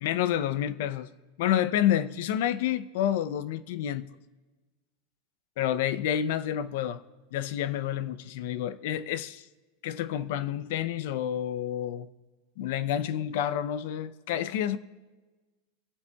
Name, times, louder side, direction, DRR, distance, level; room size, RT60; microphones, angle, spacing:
voice 1, 0.0-1.1 1.4-4.1 5.6-7.0 7.3-9.5 9.8-12.1 12.6-14.8, left 11 dB, 65° left, 0.5 m, -29 dB
20.5 x 8.1 x 2.3 m
supercardioid pair, 135°, 0 cm